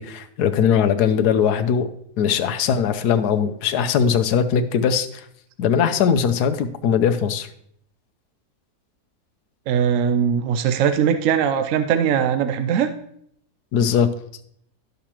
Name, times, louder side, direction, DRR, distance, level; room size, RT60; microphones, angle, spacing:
voice 1, 0.0-1.9 2.2-5.3 5.6-7.5 13.7-14.1, left 7 dB, 75° left, 10 dB, 1.2 m, -20 dB
voice 2, 9.7-12.9, right 8 dB, 70° right, 8 dB, 0.8 m, -20 dB
11.5 x 6.6 x 2.9 m, 0.69 s
omnidirectional pair, 1.7 m